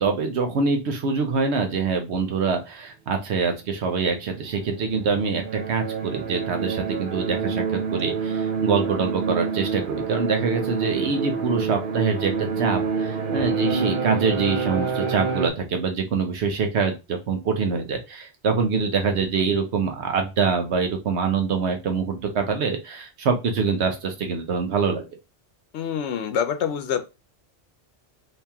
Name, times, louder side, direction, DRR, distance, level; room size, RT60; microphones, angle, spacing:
voice 1, 0.0-25.0, right 5 dB, 80° right, 5 dB, 1.0 m, -25 dB
sound 1, 4.3-15.5, right 5 dB, 55° right, 0.8 m, -27 dB
voice 2, 25.7-27.1, left 8 dB, 85° left, 9 dB, 0.9 m, -26 dB
2.9 x 2.9 x 3.4 m, 0.27 s
omnidirectional pair, 1.1 m